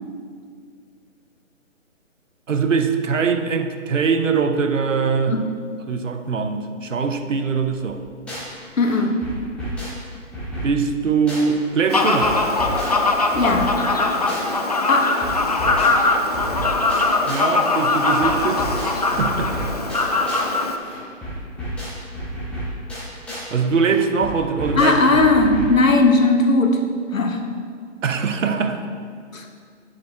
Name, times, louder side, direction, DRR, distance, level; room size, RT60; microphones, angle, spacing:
voice 1, 2.5-5.4 5.9-8.0 10.6-12.4 17.3-18.7 19.1-19.5 23.5-25.2 28.0-28.8, right 5 dB, 75° right, 8 dB, 0.8 m, -22 dB
sound 1, 8.0-8.6 8.8-11.6 11.8-14.6 14.8-17.6 17.8-20.6 20.8-23.6 23.8-25.8, equal, 5° left, 1.1 m, -32 dB
voice 2, 8.8-9.2 13.3-13.8 14.9-15.2 24.7-26.8 27.1-27.4 29.3-29.4, left 3 dB, 85° left, 4 dB, 1.1 m, -17 dB
Fowl, 11.9-20.8, left 3 dB, 30° left, 0.4 m, -21 dB
8.7 x 6.8 x 3.3 m, 2.1 s
figure-of-eight pair, 145°, 39 cm